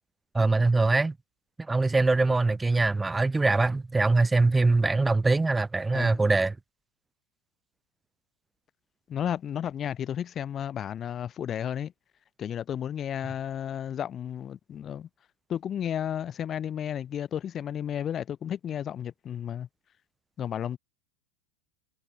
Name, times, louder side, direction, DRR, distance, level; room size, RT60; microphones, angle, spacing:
voice 1, 0.3-1.1 1.7-6.6, right 3 dB, 10° right, 2.5 m, -23 dB
voice 2, 5.9-6.2 9.1-11.9 12.4-15.1 15.5-19.7 20.4-20.8, left 9 dB, 35° left, 5.0 m, -33 dB
hypercardioid pair, 100°, 0 cm